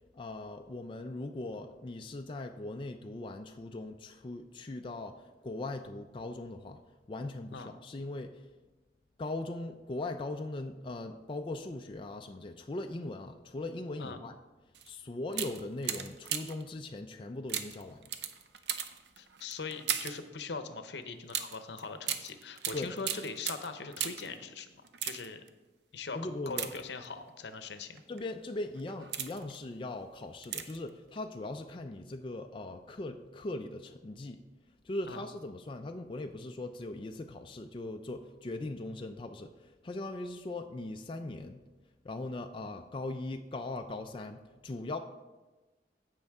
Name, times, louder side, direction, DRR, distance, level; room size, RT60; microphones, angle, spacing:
voice 1, 0.1-6.8 7.1-8.5 9.2-14.3 14.8-18.0 22.7-22.9 26.1-26.7 28.1-34.4 34.8-41.6 42.0-45.0, left 2 dB, 30° left, 5 dB, 0.4 m, -40 dB
sound 1, 14.7-14.9 15.3-16.7 17.5-20.3 21.3-24.4 24.8-25.5 26.5-27.3 28.0-28.2 28.8-29.6 30.4-30.9 31.2-31.3, right 9 dB, 75° right, 0.6 m, -37 dB
voice 2, 19.2-25.4 25.9-26.2 26.5-28.0 35.1-35.2, left 4 dB, 75° left, 9 dB, 0.8 m, -41 dB
15.0 x 5.3 x 3.5 m, 1.2 s
head